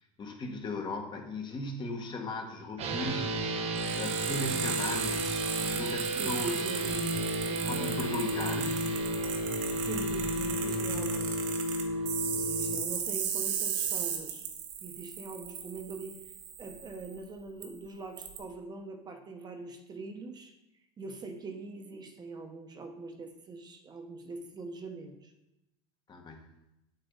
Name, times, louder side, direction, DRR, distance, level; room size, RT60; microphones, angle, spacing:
voice 1, 0.2-5.4 5.7-6.6 7.6-8.9 26.1-26.5, left 2 dB, 30° left, 3 dB, 1.7 m, -38 dB
sound 1, 2.8-12.7, right 1 dB, 45° right, 1.5 m, -32 dB
sound 2, 3.8-17.1 17.6-17.7 18.2-18.4, right 8 dB, 90° right, 1.9 m, -36 dB
voice 2, 6.1-7.1 7.5-7.8 8.1-8.5 9.8-11.4 12.3-14.4 14.8-16.2 16.6-20.5 21.0-25.3, right 3 dB, 25° right, 5 dB, 1.1 m, -42 dB
8.6 x 8.1 x 4.0 m, 0.91 s
supercardioid pair, 125°, 15 cm